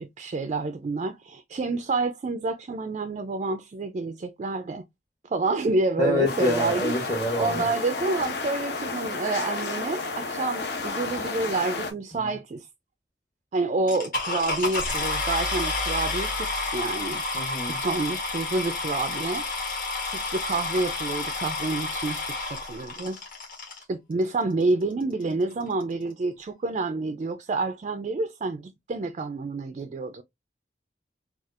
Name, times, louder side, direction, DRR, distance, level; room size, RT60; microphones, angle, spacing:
voice 1, 0.0-4.8 5.3-6.9 7.4-12.7 13.5-19.4 20.1-23.2 23.9-30.2, right 3 dB, 40° right, 0.3 m, -28 dB
voice 2, 6.0-7.7 17.3-17.8, left 1 dB, 25° left, 0.7 m, -26 dB
sound 1, 6.2-11.9, left 3 dB, 70° left, 0.7 m, -31 dB
sound 2, 13.9-23.8 24.6-24.7 25.2-25.3 25.5-25.8, left 3 dB, 50° left, 1.5 m, -30 dB
4.1 x 2.3 x 2.4 m
head